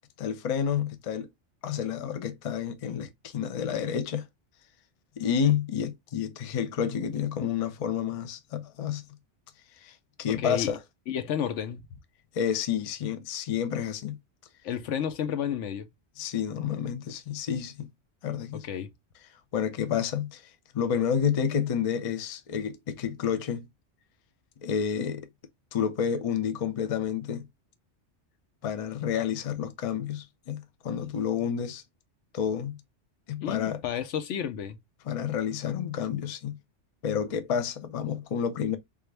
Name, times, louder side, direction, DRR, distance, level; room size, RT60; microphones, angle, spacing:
voice 1, 0.2-1.3 1.6-4.3 5.2-9.0 9.8-10.8 12.3-14.2 16.2-17.9 18.2-18.7 19.5-23.7 24.6-25.3 25.7-27.5 28.6-31.8 32.3-32.8 33.3-33.8 35.1-36.6 37.0-38.8, left 8 dB, 50° left, 0.4 m, -30 dB
voice 2, 10.3-10.7 11.1-11.8 14.6-15.9 18.5-18.9 33.4-34.8, left 9 dB, 80° left, 1.0 m, -31 dB
3.5 x 2.5 x 3.2 m
omnidirectional pair, 1.2 m